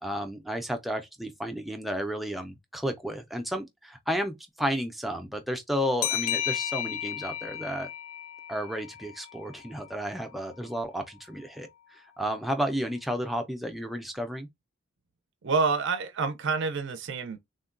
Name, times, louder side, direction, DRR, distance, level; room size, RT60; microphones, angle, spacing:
voice 1, 0.0-7.9 8.5-11.7 12.2-14.5, equal, ahead, 0.4 m, -32 dB
sound 1, 6.0-9.3, left 11 dB, 85° left, 0.3 m, -33 dB
voice 2, 15.4-17.4, right 4 dB, 60° right, 0.5 m, -27 dB
3.6 x 2.1 x 2.4 m
head